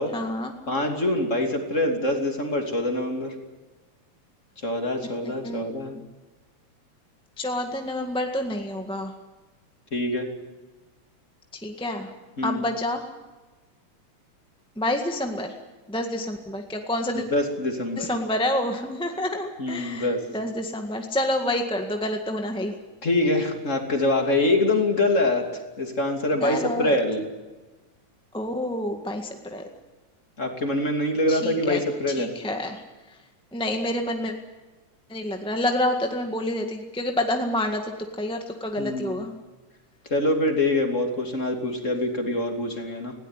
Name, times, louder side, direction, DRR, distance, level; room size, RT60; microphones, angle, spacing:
voice 1, 0.1-0.5 5.0-5.6 7.4-9.1 11.6-12.1 12.4-13.0 14.7-15.6 15.9-17.2 18.0-22.7 26.4-27.0 28.3-29.7 31.3-31.8 32.1-33.2 33.5-34.3 35.1-39.3, left 1 dB, 5° left, 4 dB, 1.0 m, -28 dB
voice 2, 0.7-3.3 4.6-6.0 9.9-10.3 12.4-12.6 17.1-18.1 19.6-20.2 23.0-27.3 30.4-32.3 38.8-39.2 40.0-43.1, left 1 dB, 25° left, 4 dB, 2.8 m, -25 dB
20.0 x 17.5 x 9.9 m, 1.2 s
omnidirectional pair, 3.4 m